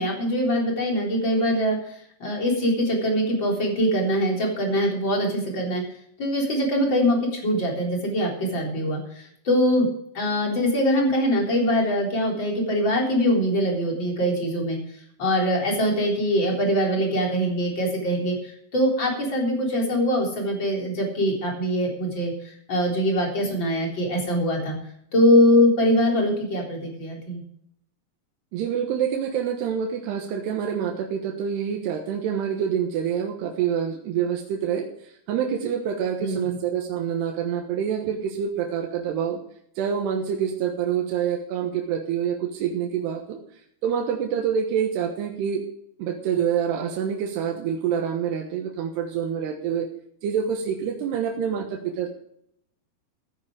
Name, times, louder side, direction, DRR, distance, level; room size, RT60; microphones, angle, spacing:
voice 1, 0.0-1.8 2.2-5.8 6.2-9.9 10.1-14.8 15.2-24.8 25.1-27.4 36.2-36.6, equal, 30° left, 0 dB, 4.2 m, -23 dB
voice 2, 28.5-39.4 39.8-43.4 43.8-45.7 46.0-49.9 50.2-52.1, right 8 dB, 85° right, 2 dB, 3.4 m, -26 dB
16.0 x 9.9 x 5.0 m, 0.70 s
omnidirectional pair, 4.6 m